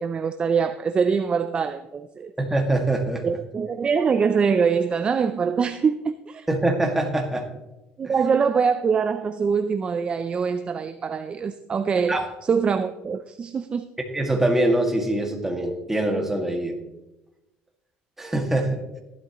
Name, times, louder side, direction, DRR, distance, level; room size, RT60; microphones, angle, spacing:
voice 1, 0.0-2.3 3.2-6.5 8.0-13.9, right 6 dB, 30° right, 0.5 m, -24 dB
voice 2, 2.4-3.2 6.5-7.5 8.0-8.1 12.1-12.3 14.1-16.8 18.2-18.8, right 1 dB, 10° right, 2.0 m, -23 dB
15.5 x 11.5 x 3.0 m
cardioid pair, 125°, 4 cm